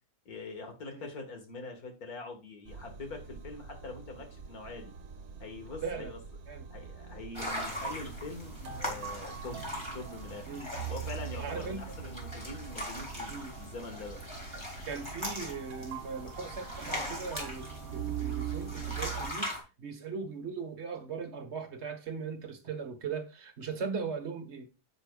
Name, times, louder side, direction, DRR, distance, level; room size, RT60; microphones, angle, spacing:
voice 1, 0.3-4.9 5.4-6.2 6.7-9.7 9.9-10.5 10.9-13.3 13.6-14.2, left 3 dB, 60° left, 2.3 m, -43 dB
sound 1, 2.7-19.3, right 8 dB, 65° right, 1.4 m, -42 dB
voice 2, 5.8-6.1 6.5-6.6 10.5-10.7 11.4-12.0 13.3-13.5 14.8-17.7 17.9-24.7, right 5 dB, 45° right, 1.5 m, -39 dB
sound 2, 7.3-19.6, equal, 15° left, 3.1 m, -40 dB
10.0 x 7.8 x 2.4 m
omnidirectional pair, 1.8 m